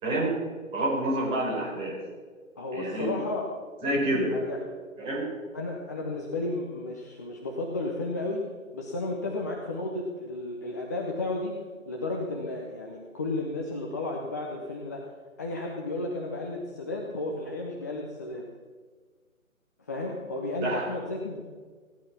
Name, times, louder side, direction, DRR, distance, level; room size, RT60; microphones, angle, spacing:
voice 1, 0.0-0.4 0.7-2.0 2.7-3.1 3.8-4.3 5.0-5.3 20.6-20.8, right 1 dB, 15° right, -6 dB, 4.6 m, -28 dB
voice 2, 2.6-3.5 4.3-4.7 5.5-8.4 8.7-11.5 11.9-15.0 15.4-18.4 19.8-21.4, left 2 dB, 15° left, -1 dB, 0.6 m, -33 dB
17.5 x 10.5 x 5.9 m, 1.5 s
figure-of-eight pair, 150°, 41 cm